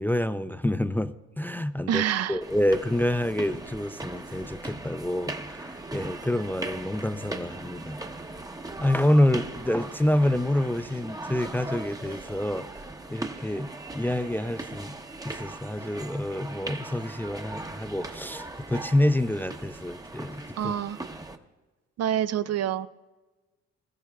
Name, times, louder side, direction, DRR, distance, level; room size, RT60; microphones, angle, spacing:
voice 1, 0.0-2.0 2.3-8.0 8.8-12.7 13.1-14.9 15.2-20.7, left 1 dB, 5° left, 10 dB, 0.4 m, -27 dB
voice 2, 1.9-2.4 20.6-21.0 22.0-22.9, right 10 dB, 55° right, 15 dB, 0.5 m, -27 dB
sound 1, 2.4-21.4, right 2 dB, 10° right, 0.9 m, -39 dB
21.0 x 13.5 x 2.3 m, 1.2 s
cardioid pair, 90°, 30 cm